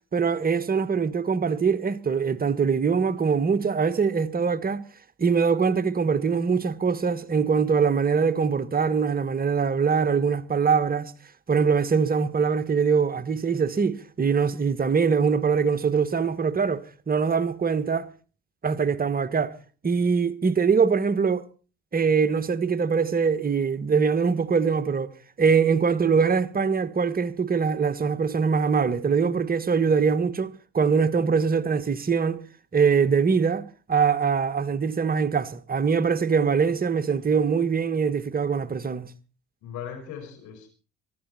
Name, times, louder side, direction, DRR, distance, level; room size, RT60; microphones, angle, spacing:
voice 1, 0.1-4.8 5.2-11.1 11.5-18.1 18.6-19.5 19.8-21.4 21.9-32.4 32.7-39.1, right 5 dB, 25° right, 1.4 m, -23 dB
voice 2, 39.6-40.7, left 8 dB, 55° left, 5.4 m, -39 dB
24.0 x 12.0 x 4.3 m
figure-of-eight pair, 55°, 35 cm